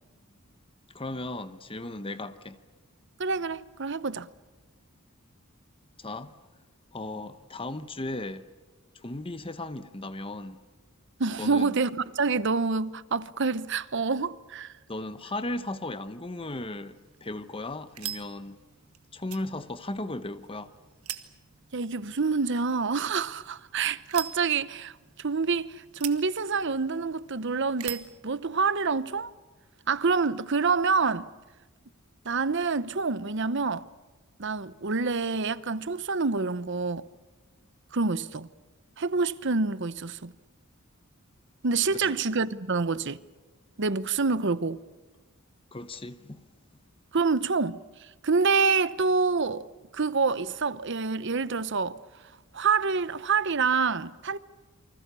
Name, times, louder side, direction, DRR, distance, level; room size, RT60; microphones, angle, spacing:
voice 1, 0.9-2.6 6.0-6.3 6.9-8.5 8.9-10.6 11.4-11.7 14.9-18.6 19.1-20.7 42.0-42.1 45.7-46.4, left 2 dB, 25° left, 1.0 m, -36 dB
voice 2, 3.2-4.3 11.2-14.7 21.7-29.3 29.9-31.3 32.2-33.9 34.4-37.1 37.9-38.5 39.0-40.3 41.6-43.2 43.8-44.8 47.1-49.7 49.9-52.0 52.5-54.4, right 4 dB, 55° right, 0.9 m, -27 dB
sound 1, 16.8-28.2, right 12 dB, 90° right, 1.7 m, -44 dB
28.5 x 25.0 x 7.0 m
head